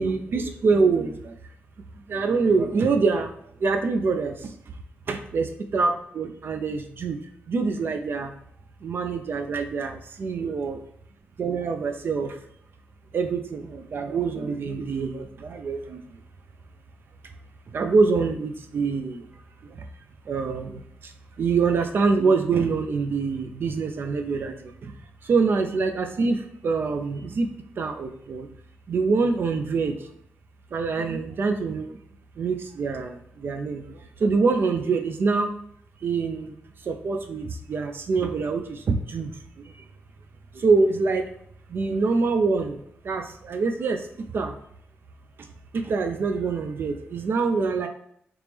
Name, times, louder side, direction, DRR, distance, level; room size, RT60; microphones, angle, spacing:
voice 1, 0.0-1.3 2.1-3.3 3.6-4.5 5.1-7.2 7.5-8.3 8.8-10.8 11.4-12.4 13.1-16.0 17.7-19.2 20.3-20.8 21.4-24.5 24.8-24.9 25.2-28.5 28.9-30.0 30.7-31.9 32.4-35.5 36.0-36.5 36.9-39.3 40.6-41.3 41.7-42.8 43.0-44.0 44.3-44.5 45.7-47.9, right 4 dB, 55° right, 6 dB, 0.3 m, -25 dB
3.4 x 3.0 x 3.2 m, 0.69 s
wide cardioid pair, 130°, 4 cm